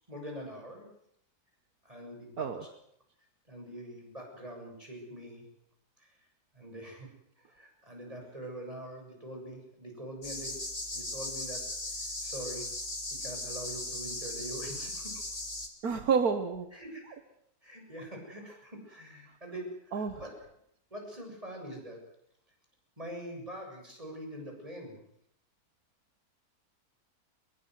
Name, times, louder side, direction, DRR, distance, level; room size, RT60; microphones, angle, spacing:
voice 1, 0.1-0.9 1.8-2.7 3.5-5.4 6.0-6.1 6.5-7.1 7.5-10.6 10.9-11.6 12.2-12.7 13.1-15.1 16.7-17.2 17.6-20.4 20.9-22.0 23.0-25.0, right 1 dB, 20° right, 1 dB, 7.5 m, -44 dB
sound 1, 10.2-15.7, left 2 dB, 25° left, 2.8 m, -38 dB
voice 2, 15.8-16.7 17.0-17.2 19.9-20.2, right 5 dB, 70° right, 8 dB, 1.8 m, -29 dB
23.5 x 22.0 x 7.9 m, 0.72 s
omnidirectional pair, 1.6 m